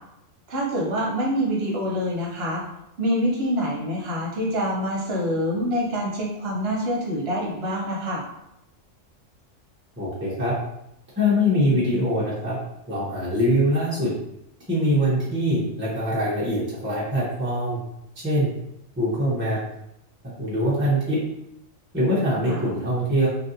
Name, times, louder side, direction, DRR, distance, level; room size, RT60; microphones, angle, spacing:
voice 1, 0.5-2.6 3.0-8.2 22.5-22.6, equal, 55° right, -2 dB, 1.0 m, -26 dB
voice 2, 10.0-10.5 11.2-12.6 12.9-14.1 14.7-17.8 18.2-18.5 19.0-19.6 20.4-21.2 21.9-23.3, equal, 15° right, -9 dB, 0.5 m, -23 dB
3.1 x 2.6 x 2.6 m, 0.82 s
omnidirectional pair, 1.4 m